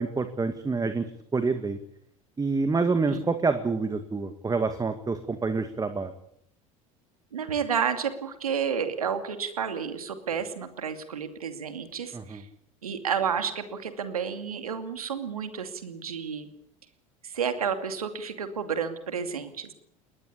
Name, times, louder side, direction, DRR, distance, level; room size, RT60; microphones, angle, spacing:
voice 1, 0.0-1.8 2.4-6.1 12.1-12.4, right 4 dB, 20° right, 9 dB, 2.1 m, -27 dB
voice 2, 7.3-12.4 12.8-16.5 17.2-19.7, right 7 dB, 90° right, 9 dB, 2.5 m, -31 dB
20.5 x 20.0 x 8.5 m, 0.71 s
hypercardioid pair, 75°, 18 cm